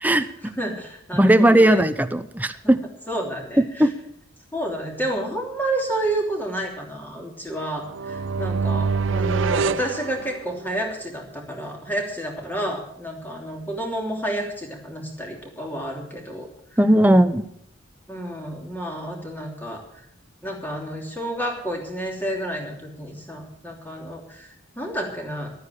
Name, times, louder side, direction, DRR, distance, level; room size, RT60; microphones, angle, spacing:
voice 1, 0.0-0.5 1.1-2.8 3.8-3.9 16.8-17.4, right 1 dB, 10° right, 10 dB, 0.6 m, -17 dB
voice 2, 0.6-1.9 2.6-2.7 3.1-3.9 4.5-16.8 18.1-19.8 20.4-25.5, right 1 dB, 10° left, 1 dB, 3.0 m, -30 dB
sound 1, 7.8-10.9, right 5 dB, 70° right, 0.5 m, -25 dB
11.5 x 9.4 x 8.6 m, 0.73 s
head